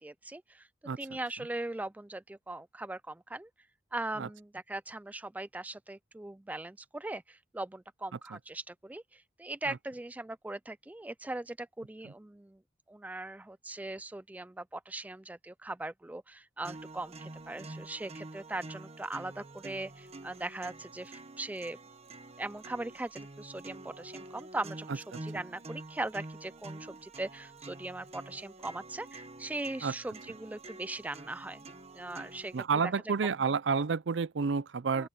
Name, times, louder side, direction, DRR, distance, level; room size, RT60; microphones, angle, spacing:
voice 1, 0.0-0.7 1.0-3.5 3.9-12.6 12.9-21.8 22.4-31.6 31.9-33.1 34.9-35.1, right 2 dB, 10° right, 0.3 m, -40 dB
sound 1, 16.6-32.6, right 2 dB, 35° right, 1.3 m, -47 dB
voice 2, 32.5-35.1, right 5 dB, 70° right, 0.5 m, -29 dB
open air
head